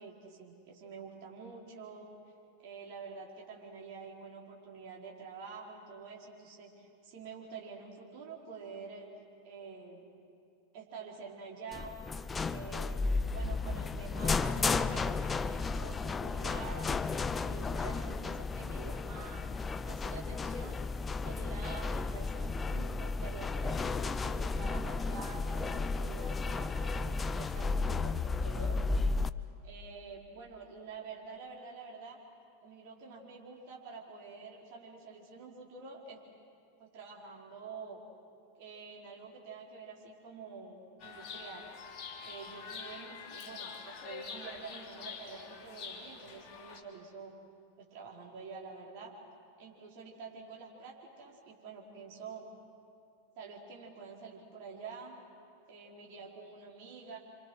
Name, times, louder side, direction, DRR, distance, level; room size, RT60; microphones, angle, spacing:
voice 1, 0.0-2.1 2.6-9.1 9.4-10.0 10.7-12.0 12.4-19.4 19.8-20.8 21.2-28.9 29.6-32.2 32.6-36.2 36.8-38.0 38.6-41.7 42.2-47.3 47.8-49.1 49.6-52.5 53.4-55.2 55.7-57.2, right 4 dB, 45° right, -2 dB, 4.6 m, -47 dB
sound 1, 11.7-29.3, left 4 dB, 15° left, 0.6 m, -33 dB
Chirp tweet, 41.0-46.8, left 5 dB, 40° left, 3.0 m, -46 dB
28.0 x 25.5 x 6.4 m, 2.6 s
figure-of-eight pair, 90°, 0 cm